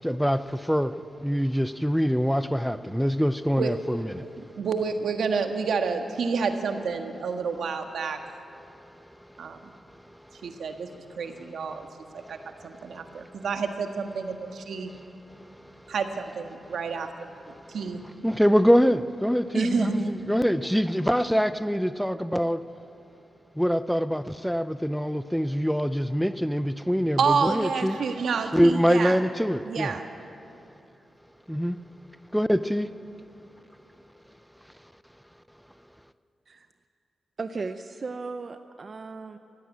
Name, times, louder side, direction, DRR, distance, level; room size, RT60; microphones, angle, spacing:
voice 1, 0.0-4.3 9.0-11.0 11.8-11.9 12.1-13.3 15.3-15.9 17.6-17.8 18.2-22.6 23.6-28.0 28.5-30.0 31.5-31.8 32.3-32.9, equal, ahead, 12 dB, 0.5 m, -25 dB
voice 2, 4.2-8.2 9.4-9.6 10.4-10.9 11.2-11.9 12.3-12.4 12.6-14.9 15.9-17.1 17.7-18.0 19.5-20.1 27.2-29.2 29.6-30.1, right 5 dB, 75° right, 5 dB, 1.5 m, -29 dB
voice 3, 37.4-39.4, right 4 dB, 45° right, 8 dB, 0.6 m, -36 dB
17.0 x 16.5 x 9.4 m, 3.0 s
cardioid pair, 95°, 0 cm